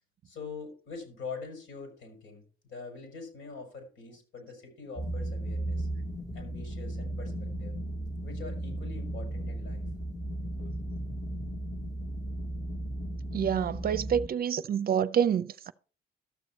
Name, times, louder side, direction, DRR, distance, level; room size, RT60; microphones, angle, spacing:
voice 1, 0.2-5.9 6.3-7.7 8.2-9.9 10.6-10.7, left 4 dB, 80° left, 5.1 m, -44 dB
sound 1, 5.0-14.3, right 1 dB, 15° left, 1.3 m, -35 dB
voice 2, 13.3-15.7, right 8 dB, 50° right, 0.5 m, -27 dB
12.5 x 6.9 x 4.2 m
cardioid pair, 90°, 20 cm